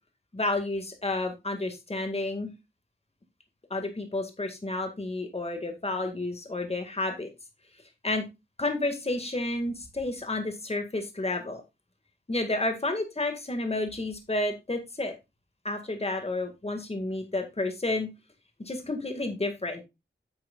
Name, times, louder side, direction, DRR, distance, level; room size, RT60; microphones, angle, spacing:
voice 1, 0.3-2.5 3.7-7.3 8.0-8.2 8.6-11.6 12.3-15.1 15.6-18.1 18.6-19.8, left 2 dB, 30° left, 6 dB, 1.9 m, -31 dB
9.5 x 8.1 x 2.4 m, 0.24 s
wide cardioid pair, 65°, 20 cm